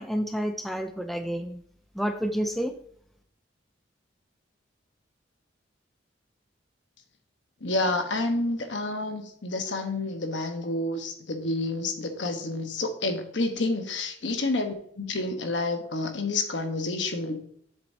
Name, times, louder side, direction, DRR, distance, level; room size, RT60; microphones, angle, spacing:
voice 1, 0.0-1.6 2.0-2.7, equal, ahead, 6 dB, 0.4 m, -29 dB
voice 2, 7.6-17.4, left 2 dB, 70° left, 6 dB, 1.1 m, -29 dB
7.5 x 7.1 x 2.7 m, 0.66 s
head